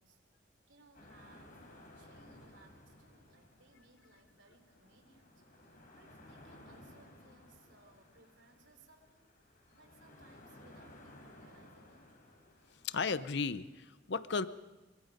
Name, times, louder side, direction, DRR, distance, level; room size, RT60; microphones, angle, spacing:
voice 1, 0.0-9.3 9.8-12.2, right 2 dB, 75° right, 6 dB, 3.4 m, -64 dB
sound 1, 0.9-13.8, left 1 dB, 50° left, 4.4 m, -58 dB
voice 2, 12.8-14.5, left 4 dB, 65° left, 14 dB, 0.8 m, -34 dB
25.0 x 24.0 x 5.3 m, 1.1 s
head